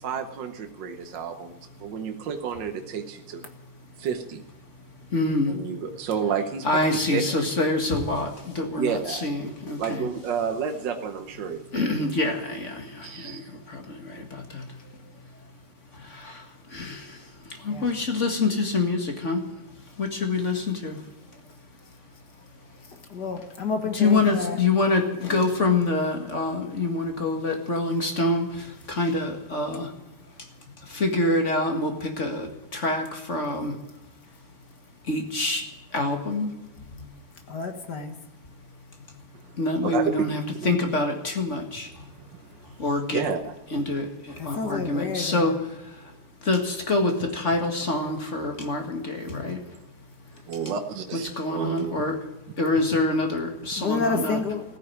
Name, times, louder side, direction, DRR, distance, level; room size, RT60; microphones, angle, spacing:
voice 1, 0.0-3.5 4.0-4.4 5.5-7.5 8.7-9.3 9.8-12.0 13.0-13.5 39.8-40.2 40.6-40.8 42.1-42.4 42.7-42.9 43.1-43.5 50.5-52.0, right 7 dB, 60° right, 1.6 m, -31 dB
voice 2, 5.1-5.6 6.6-10.1 11.7-13.4 13.7-14.6 15.9-19.4 20.0-21.0 23.9-29.9 30.8-33.8 35.1-35.7 35.9-36.5 36.8-37.1 39.6-42.1 42.8-43.2 43.7-45.6 46.4-49.6 51.4-52.2 52.6-54.4, left 2 dB, 35° left, 2.0 m, -26 dB
voice 3, 23.1-24.6 37.5-38.2 44.4-45.6 53.8-54.6, left 4 dB, 50° left, 1.9 m, -29 dB
16.0 x 9.0 x 9.8 m
omnidirectional pair, 2.3 m